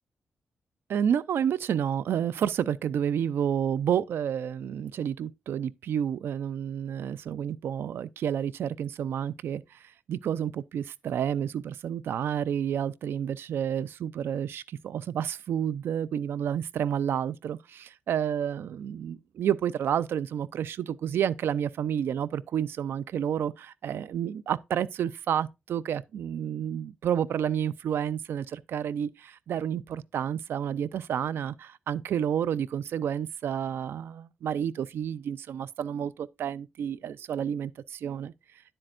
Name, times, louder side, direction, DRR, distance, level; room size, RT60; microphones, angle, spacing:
voice 1, 0.9-9.8 10.1-38.3, right 9 dB, 85° right, 0.5 m, -30 dB
9.9 x 7.7 x 2.5 m
cardioid pair, 95°, 4 cm